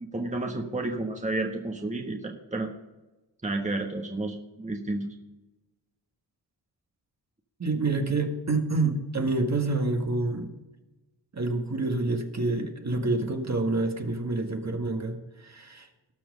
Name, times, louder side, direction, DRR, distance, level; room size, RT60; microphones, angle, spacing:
voice 1, 0.1-2.7 3.4-5.1, right 2 dB, 15° right, 2 dB, 1.4 m, -31 dB
voice 2, 7.6-10.5 11.3-16.1, right 3 dB, 40° right, 4 dB, 1.7 m, -28 dB
18.0 x 6.1 x 5.3 m, 1.1 s
cardioid pair, 70°, 42 cm